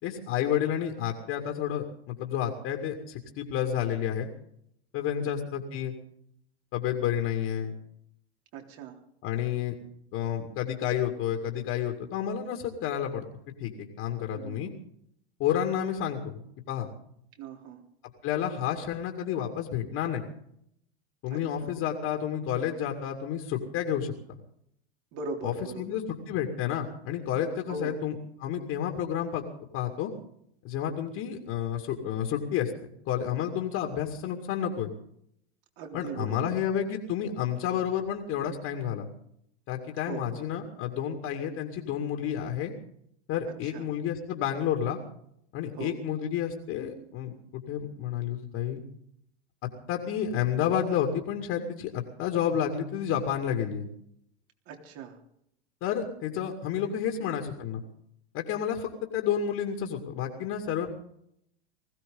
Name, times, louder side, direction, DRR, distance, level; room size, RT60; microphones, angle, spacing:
voice 1, 0.0-4.3 4.9-5.9 6.7-7.8 9.2-9.7 10.1-13.2 13.6-13.7 14.0-14.7 15.4-16.4 16.7-16.9 18.2-20.3 21.2-24.4 25.4-28.1 28.4-29.5 29.7-30.1 30.6-32.7 33.1-34.9 35.9-39.1 39.7-42.7 43.3-45.0 45.5-48.8 49.9-53.9 55.8-57.8 58.3-60.9, left 9 dB, 45° left, 3 dB, 2.4 m, -30 dB
voice 2, 5.2-5.5 8.5-9.0 14.3-14.6 17.4-17.8 21.3-21.7 25.1-25.9 27.7-28.0 35.8-36.5 40.1-40.4 43.6-43.9 45.8-46.0 54.7-55.2 57.2-57.3, right 4 dB, 50° right, 2 dB, 3.6 m, -40 dB
20.5 x 16.0 x 3.9 m, 0.73 s
hypercardioid pair, 100°, 33 cm